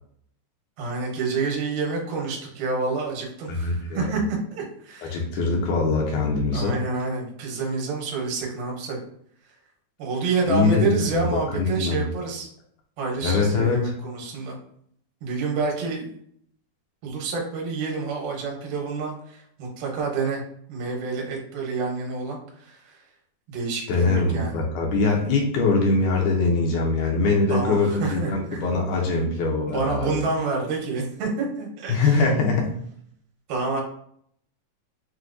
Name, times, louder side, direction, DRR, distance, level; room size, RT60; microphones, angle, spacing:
voice 1, 0.8-5.2 6.5-9.0 10.0-12.5 13.0-14.6 15.2-16.0 17.0-20.4 20.7-23.0 23.5-24.6 27.5-28.6 29.7-32.2 33.5-33.8, right 4 dB, 70° right, -1 dB, 2.4 m, -28 dB
voice 2, 3.5-4.1 5.0-6.8 10.5-12.0 13.2-13.9 23.9-30.2 31.9-32.8, left 3 dB, 75° left, 0 dB, 1.9 m, -23 dB
6.0 x 2.7 x 2.5 m, 0.66 s
omnidirectional pair, 4.3 m